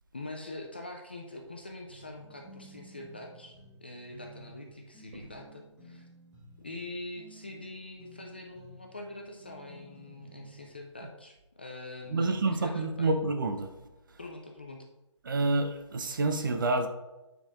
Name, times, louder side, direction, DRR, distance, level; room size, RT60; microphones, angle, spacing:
voice 1, 0.1-6.1 6.6-13.2 14.2-14.9, left 2 dB, 20° left, 2 dB, 0.4 m, -44 dB
sound 1, 1.9-10.8, right 2 dB, 5° right, 1.0 m, -53 dB
voice 2, 12.1-13.7 15.2-16.9, right 2 dB, 40° right, 7 dB, 0.8 m, -28 dB
9.1 x 4.0 x 3.7 m, 1.0 s
hypercardioid pair, 170°, 16 cm